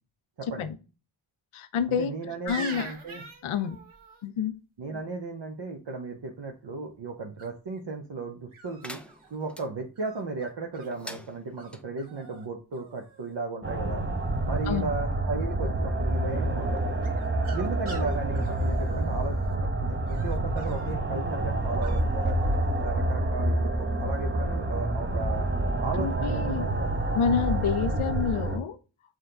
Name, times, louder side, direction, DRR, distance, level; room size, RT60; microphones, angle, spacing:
voice 1, 0.4-0.7 1.9-3.2 4.8-9.0 9.3-14.0 14.4-16.8 17.5-22.4 22.8-25.5 25.8-26.9, right 3 dB, 55° right, 1 dB, 0.8 m, -35 dB
voice 2, 1.5-2.1 2.5-2.9 3.4-3.8 4.2-4.5 14.7-14.9 26.0-26.7 27.1-28.8, left 7 dB, 75° left, 12 dB, 0.6 m, -28 dB
sound 1, 2.5-4.2 7.4-7.8 8.5-9.4 10.0-10.9 11.6-11.7 12.0-12.5 12.7-13.3 17.0-19.5 20.1-20.9 21.8-22.0, right 4 dB, 75° right, 1.2 m, -44 dB
sound 2, 8.8-9.7 10.9-11.8, equal, ahead, 0.4 m, -44 dB
sound 3, 13.6-28.6, right 1 dB, 25° right, 0.7 m, -28 dB
6.3 x 2.2 x 3.7 m, 0.33 s
cardioid pair, 40°, 50 cm